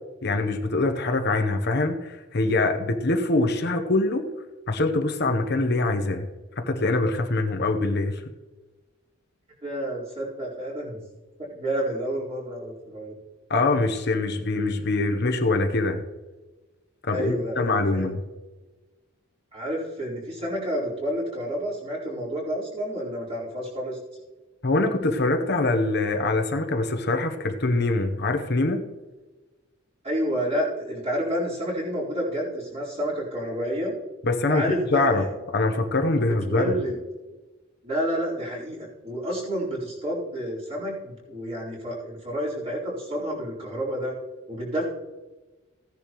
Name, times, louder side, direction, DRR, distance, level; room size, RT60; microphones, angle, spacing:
voice 1, 0.2-4.3 4.7-6.3 6.6-8.2 13.5-16.0 17.0-18.2 24.6-28.8 34.2-36.8, left 2 dB, 55° left, 5 dB, 0.9 m, -24 dB
voice 2, 9.6-11.0 11.4-13.1 17.1-18.1 19.5-24.0 30.0-33.9 34.5-35.3 36.2-36.9 37.8-44.1 44.5-44.9, equal, 30° right, -6 dB, 4.3 m, -29 dB
16.0 x 10.5 x 3.1 m, 1.2 s
head